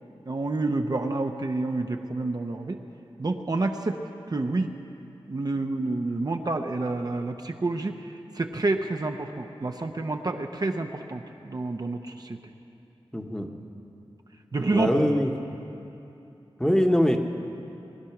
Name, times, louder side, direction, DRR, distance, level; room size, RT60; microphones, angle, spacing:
voice 1, 0.3-2.8 3.2-4.0 4.3-4.7 5.3-12.5 14.5-14.9, right 2 dB, 40° right, 4 dB, 0.7 m, -29 dB
voice 2, 13.1-13.5 14.7-15.3 16.6-17.2, equal, 5° left, 3 dB, 1.1 m, -22 dB
20.5 x 11.5 x 5.9 m, 2.8 s
wide cardioid pair, 100°, 10 cm